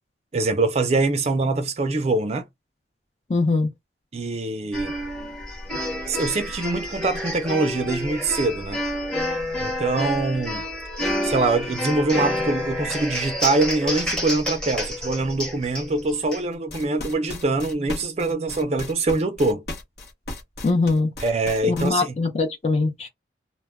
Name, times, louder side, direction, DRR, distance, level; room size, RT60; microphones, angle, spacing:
voice 1, 0.3-2.5 4.1-4.9 6.1-8.8 9.6-10.6 11.2-19.6 21.2-22.1, right 3 dB, 35° right, 0.4 m, -24 dB
voice 2, 3.3-3.7 20.6-21.1 21.6-23.1, left 3 dB, 35° left, 0.5 m, -22 dB
sound 1, 4.7-16.4, left 1 dB, 5° left, 0.8 m, -29 dB
sound 2, 16.5-21.9, left 2 dB, 60° left, 0.9 m, -35 dB
2.1 x 2.1 x 3.4 m
head